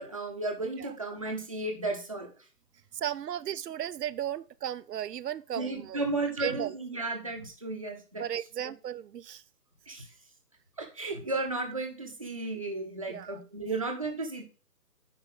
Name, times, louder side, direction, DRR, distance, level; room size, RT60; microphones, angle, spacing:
voice 1, 0.0-2.3 3.0-3.1 3.5-3.6 5.5-8.7 9.9-10.1 10.8-14.4, right 2 dB, 20° right, 0.7 m, -34 dB
voice 2, 2.9-6.0 6.4-6.7 8.2-9.4 13.1-13.4, right 10 dB, 80° right, 0.5 m, -35 dB
9.8 x 4.2 x 3.7 m
hypercardioid pair, 165°, 48 cm